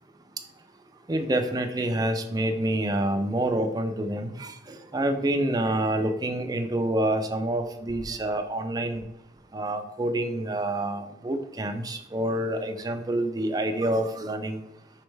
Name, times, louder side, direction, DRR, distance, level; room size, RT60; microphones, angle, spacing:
voice 1, 1.1-9.0 9.5-14.6, right 1 dB, 20° right, 6 dB, 0.4 m, -27 dB
5.2 x 3.2 x 3.2 m, 0.91 s
head